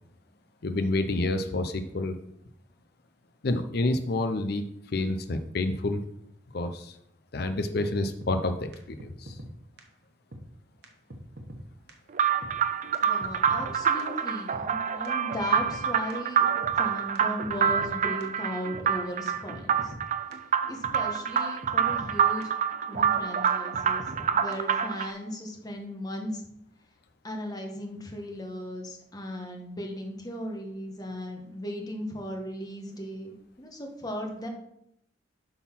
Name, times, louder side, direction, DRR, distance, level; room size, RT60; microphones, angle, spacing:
voice 1, 0.6-2.2 3.4-6.0 6.5-7.0 7.3-9.4, left 2 dB, 60° left, 8 dB, 0.6 m, -29 dB
sound 1, 8.2-8.3 8.7-8.8 9.0-9.5 9.8-9.9 10.3-10.4 10.8-10.9 11.1-11.6 11.9-12.0 12.4-12.5 12.9-13.0 13.2-13.7 14.0-14.1 14.5-14.6 15.0-15.8 16.1-16.2 16.6-16.7 17.2-17.3 17.4-17.9 18.2-18.3 18.7-18.8 19.3-19.4 19.5-20.0 20.3-20.4 20.8-21.0 21.4-21.5 21.6-22.1 22.4-22.5 22.9-23.1 23.5-23.6 23.7-24.2 24.5-24.6, equal, 60° right, 1.1 m, -42 dB
sound 2, 12.1-25.1, right 7 dB, 45° right, 0.4 m, -27 dB
voice 2, 13.0-16.5 16.8-19.9 20.7-22.5 22.9-26.4 27.2-34.5, equal, 20° left, 2 dB, 1.3 m, -37 dB
8.3 x 3.9 x 5.9 m, 0.76 s
head